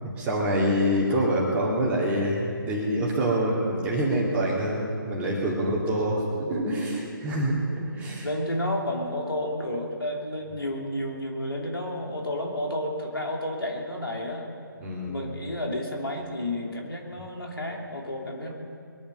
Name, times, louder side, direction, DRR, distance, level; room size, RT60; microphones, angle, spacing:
voice 1, 0.0-8.3 14.8-15.1, right 1 dB, 10° right, -4 dB, 2.3 m, -26 dB
voice 2, 8.2-14.5 15.1-18.5, left 1 dB, 85° left, 0 dB, 3.0 m, -31 dB
22.0 x 10.5 x 5.5 m, 2.5 s
figure-of-eight pair, 150°, 12 cm